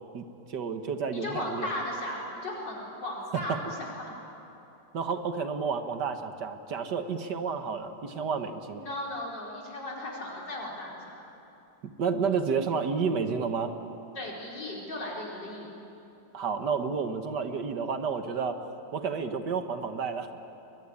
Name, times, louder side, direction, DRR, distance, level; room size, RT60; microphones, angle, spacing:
voice 1, 0.1-1.7 4.9-8.8 12.0-13.7 16.3-18.6 18.9-20.3, right 5 dB, 75° right, 7 dB, 2.0 m, -30 dB
voice 2, 1.1-4.1 8.7-11.2 14.2-15.7, left 1 dB, 85° left, -3 dB, 5.5 m, -36 dB
23.0 x 22.0 x 10.0 m, 2.9 s
omnidirectional pair, 1.9 m